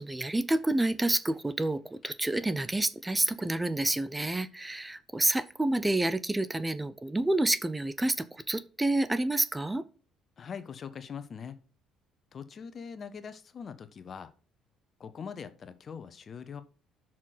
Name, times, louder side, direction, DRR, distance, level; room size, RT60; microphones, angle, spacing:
voice 1, 0.0-9.8, right 2 dB, 15° right, 15 dB, 0.7 m, -29 dB
voice 2, 10.4-11.6 12.3-14.3 15.0-16.6, left 6 dB, 45° left, 12 dB, 1.1 m, -42 dB
6.5 x 6.0 x 5.9 m, 0.37 s
supercardioid pair, 70°, 0 cm